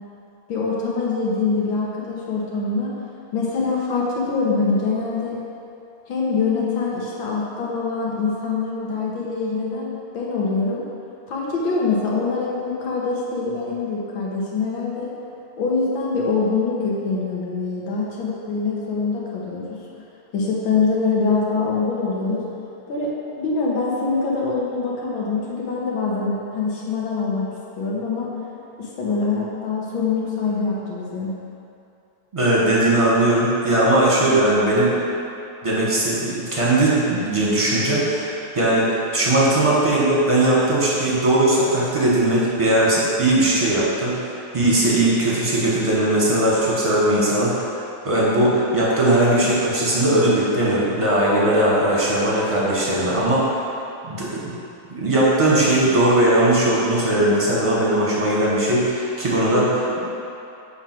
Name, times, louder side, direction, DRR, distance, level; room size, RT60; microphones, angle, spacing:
voice 1, 0.5-3.0 3.3-5.4 6.1-10.9 11.3-15.1 15.6-19.8 20.3-22.4 22.9-27.5 27.8-28.3 28.8-31.3, left 4 dB, 80° left, -4 dB, 1.9 m, -24 dB
voice 2, 32.3-35.0 35.6-47.7 48.0-53.6 54.0-54.5 55.0-60.1, right 1 dB, 20° right, -6 dB, 1.1 m, -19 dB
7.2 x 3.5 x 5.9 m, 2.7 s
omnidirectional pair, 2.1 m